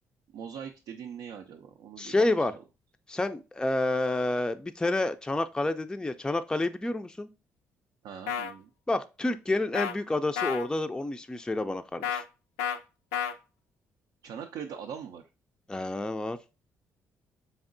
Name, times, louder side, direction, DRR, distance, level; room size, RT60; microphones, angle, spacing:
voice 1, 0.3-2.3 8.0-8.7 14.2-15.2, right 7 dB, 70° right, 0.4 m, -41 dB
voice 2, 2.0-2.6 3.1-7.3 8.9-12.2 15.7-16.4, left 2 dB, 10° left, 0.4 m, -29 dB
sound 1, 8.3-8.5 9.7-9.9 10.4-10.7 12.0-12.2 12.6-12.8 13.1-13.3, left 8 dB, 85° left, 0.4 m, -30 dB
3.9 x 3.5 x 2.5 m
hypercardioid pair, 50°, 7 cm